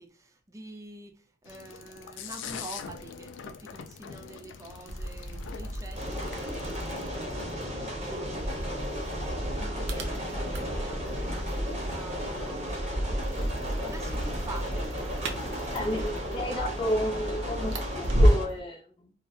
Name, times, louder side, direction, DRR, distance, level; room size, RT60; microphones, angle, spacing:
voice 1, 0.0-9.3 9.5-15.9, right 2 dB, 15° right, 0.4 m, -47 dB
sound 1, 1.5-7.1, left 7 dB, 80° left, 0.3 m, -43 dB
sound 2, 4.9-18.6, equal, 65° right, 0.5 m, -31 dB
sound 3, 5.9-18.5, equal, 35° right, 0.8 m, -36 dB
voice 2, 15.6-19.1, equal, 30° left, 0.6 m, -32 dB
2.6 x 2.1 x 2.3 m
head